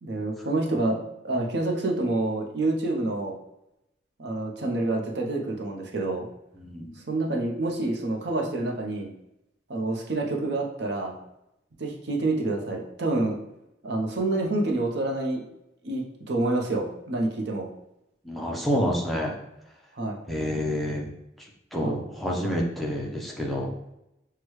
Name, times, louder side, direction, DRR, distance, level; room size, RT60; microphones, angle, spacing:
voice 1, 0.0-1.0 1.2-3.3 4.2-6.3 7.1-9.1 9.7-11.2 11.8-13.4 13.8-15.4 15.8-17.7 20.0-20.2 21.8-21.9, right 2 dB, 65° right, 0 dB, 0.7 m, -27 dB
voice 2, 6.6-7.0 18.2-19.3 20.3-21.1 21.7-23.7, equal, ahead, -3 dB, 0.6 m, -28 dB
6.2 x 2.2 x 3.1 m, 0.86 s
head